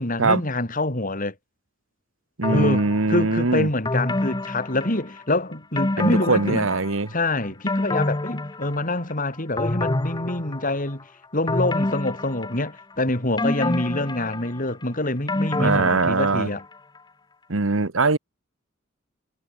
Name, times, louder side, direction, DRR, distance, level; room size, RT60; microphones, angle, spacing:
voice 1, 0.0-1.3 2.5-6.7 7.1-11.0 11.3-16.6, left 2 dB, 45° left, 4.1 m, -26 dB
sound 1, 2.4-3.2 3.8-5.3 5.8-7.1 7.4-9.1 9.6-10.9 11.5-12.9 13.4-16.6 17.0-17.1, left 2 dB, 20° left, 0.9 m, -27 dB
voice 2, 2.4-3.7 6.0-7.1 15.6-16.5 17.5-18.2, right 3 dB, 85° right, 1.4 m, -21 dB
head